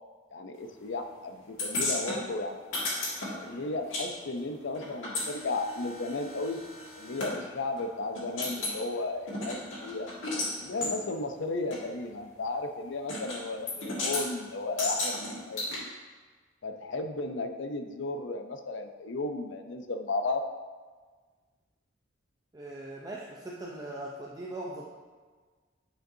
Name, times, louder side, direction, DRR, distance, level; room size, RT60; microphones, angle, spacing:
voice 1, 0.3-2.6 3.4-6.6 7.0-10.1 10.6-15.9 16.6-20.5, left 2 dB, 70° left, 6 dB, 0.6 m, -34 dB
sound 1, 1.6-4.1 4.3-7.3 7.8-7.9 8.1-8.8 9.3-10.5 10.8-10.9 11.7-11.8 13.1-13.4 13.7-14.2 14.8-15.8, left 2 dB, 85° left, 1.9 m, -34 dB
voice 2, 22.5-24.8, right 1 dB, 20° right, -4 dB, 0.5 m, -40 dB
8.8 x 5.1 x 2.7 m, 1.5 s
head